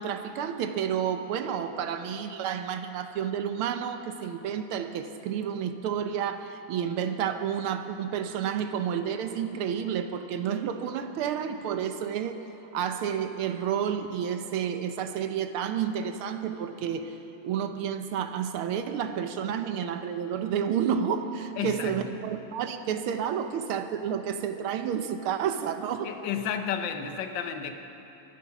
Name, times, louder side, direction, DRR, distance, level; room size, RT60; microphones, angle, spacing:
voice 1, 0.0-12.4 12.7-17.2 17.4-26.1, right 8 dB, 85° right, 8 dB, 1.7 m, -30 dB
voice 2, 21.6-22.1 26.0-27.7, left 8 dB, 65° left, 6 dB, 1.5 m, -32 dB
23.0 x 9.6 x 5.9 m, 2.9 s
omnidirectional pair, 2.3 m